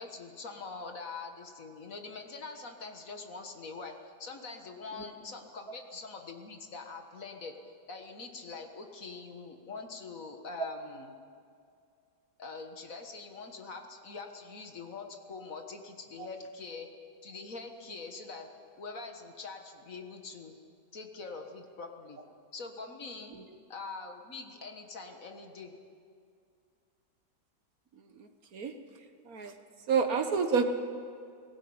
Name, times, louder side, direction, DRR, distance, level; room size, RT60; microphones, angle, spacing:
voice 1, 0.0-7.6 7.9-11.2 12.4-16.9 17.2-18.5 18.8-20.5 20.9-22.2 22.5-23.4 23.7-25.8, left 4 dB, 55° left, 4 dB, 1.9 m, -44 dB
voice 2, 29.9-30.7, right 6 dB, 60° right, 7 dB, 1.6 m, -28 dB
18.5 x 17.0 x 8.8 m, 2.4 s
omnidirectional pair, 1.8 m